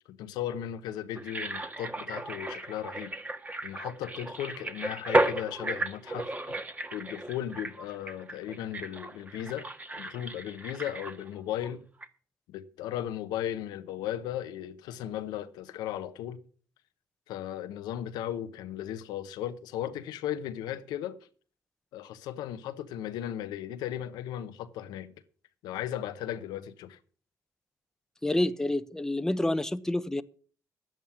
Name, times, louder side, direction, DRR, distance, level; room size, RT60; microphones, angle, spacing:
voice 1, 0.1-3.1 3.6-6.3 6.9-9.7 10.0-11.9 12.5-16.4 17.3-21.2 21.9-25.1 25.6-27.0, left 11 dB, 90° left, 0.9 m, -36 dB
sound 1, 1.2-11.7 12.0-12.1, right 2 dB, 20° right, 1.5 m, -34 dB
voice 2, 28.2-30.2, left 1 dB, 5° left, 0.8 m, -28 dB
11.0 x 9.1 x 7.1 m
cardioid pair, 70°, 7 cm